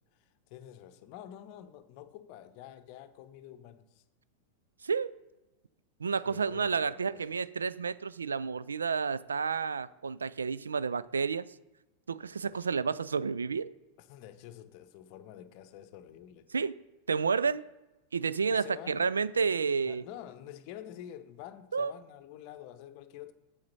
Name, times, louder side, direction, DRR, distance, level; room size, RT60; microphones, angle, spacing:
voice 1, 0.1-4.0 6.2-7.3 12.5-12.8 14.0-16.6 18.5-19.2 19.9-23.3, left 11 dB, 45° left, 0.7 m, -48 dB
voice 2, 4.8-5.1 6.0-11.4 12.1-13.7 16.5-16.7 17.1-17.6 18.1-20.0 21.7-21.9, right 5 dB, 75° right, 0.3 m, -30 dB
7.8 x 7.7 x 5.3 m
figure-of-eight pair, 90°, 0 cm